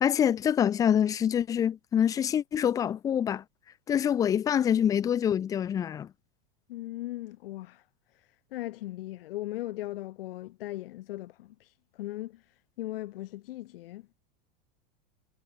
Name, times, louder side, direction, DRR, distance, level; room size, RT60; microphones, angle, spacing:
voice 1, 0.0-3.4 3.9-6.1, left 9 dB, 10° left, 0.4 m, -25 dB
voice 2, 6.7-7.8 8.5-12.4 12.8-14.1, left 16 dB, 75° left, 1.5 m, -38 dB
supercardioid pair, 150°, 29 cm